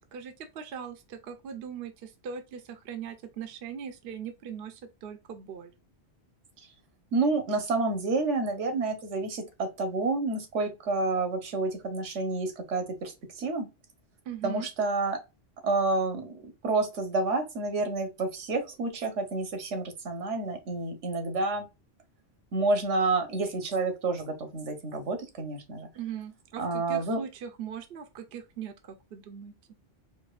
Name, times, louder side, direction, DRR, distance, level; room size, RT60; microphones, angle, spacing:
voice 1, 0.1-5.7 14.3-14.7 25.9-29.5, right 8 dB, 60° right, 0.8 m, -40 dB
voice 2, 7.1-13.1 13.4-13.7 14.4-15.2 15.6-21.7 22.5-25.9 26.6-27.2, right 3 dB, 80° right, 1.2 m, -29 dB
4.6 x 2.5 x 2.3 m
omnidirectional pair, 1.2 m